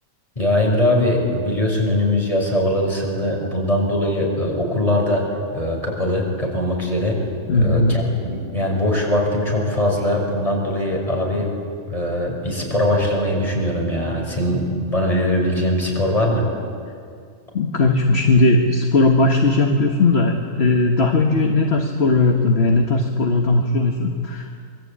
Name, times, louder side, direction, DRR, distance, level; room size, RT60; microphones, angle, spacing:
voice 1, 0.4-5.2 5.5-7.2 7.5-11.5 11.9-16.5, left 1 dB, 25° left, 0 dB, 6.3 m, -21 dB
voice 2, 7.5-7.9 17.5-24.6, left 3 dB, 45° left, 3 dB, 1.8 m, -18 dB
26.5 x 23.0 x 8.9 m, 2.2 s
omnidirectional pair, 1.5 m